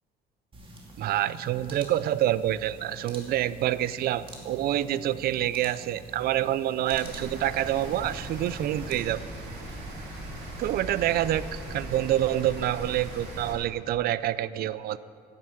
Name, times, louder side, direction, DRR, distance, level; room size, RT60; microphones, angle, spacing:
sound 1, 0.5-9.0, right 1 dB, 30° right, 2.6 m, -46 dB
voice 1, 1.0-9.2 10.6-15.0, right 13 dB, 65° right, 17 dB, 0.5 m, -27 dB
Rain, 6.9-13.5, right 1 dB, 80° right, 3.6 m, -39 dB
11.0 x 9.4 x 8.5 m, 2.3 s
cardioid pair, 110°, 17 cm